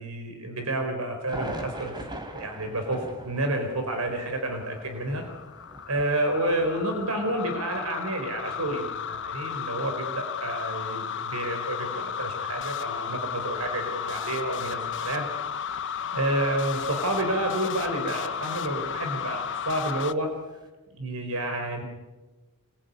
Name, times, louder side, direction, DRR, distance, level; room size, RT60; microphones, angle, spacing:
voice 1, 0.0-2.1 2.3-5.2 5.9-15.2 16.1-20.3 20.9-21.8, right 1 dB, 80° right, 4 dB, 4.4 m, -30 dB
sound 1, 1.3-16.4 16.8-16.9 18.2-20.7, right 1 dB, 20° right, 3.4 m, -45 dB
sound 2, 4.2-20.1, left 7 dB, 60° left, 1.0 m, -34 dB
26.5 x 21.0 x 9.7 m, 1.2 s
head